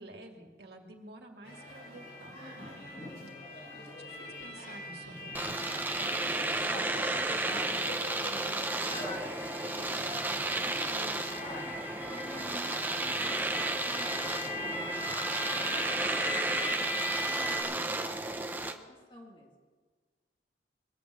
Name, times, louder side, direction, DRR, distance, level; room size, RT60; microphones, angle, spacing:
voice 1, 0.0-2.8 3.8-5.5, right 2 dB, 65° right, 2 dB, 2.2 m, -50 dB
sound 1, 1.4-17.6, left 1 dB, 55° left, 6.7 m, -40 dB
Domestic sounds home sounds, 5.3-18.8, right 2 dB, 10° right, 0.7 m, -33 dB
voice 2, 6.6-11.8 12.1-16.5 17.2-19.5, left 1 dB, 30° left, -1 dB, 2.5 m, -48 dB
22.0 x 8.2 x 8.0 m, 1.5 s
head